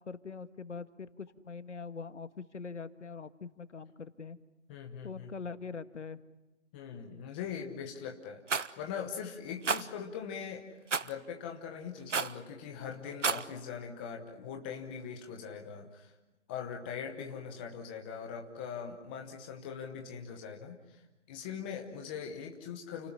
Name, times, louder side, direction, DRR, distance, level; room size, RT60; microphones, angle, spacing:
voice 1, 0.0-4.4 5.0-6.2, left 5 dB, 70° left, 11 dB, 1.7 m, -43 dB
voice 2, 4.7-5.3 6.7-10.7 11.0-16.1 16.5-21.0 21.3-23.1, left 7 dB, 10° left, 2 dB, 1.0 m, -41 dB
Rattle, 8.5-8.7 9.6-9.8 10.9-11.1 12.1-12.4 13.1-13.4, right 5 dB, 75° right, 1.3 m, -30 dB
30.0 x 18.5 x 10.0 m, 1.0 s
figure-of-eight pair, 160°, 37 cm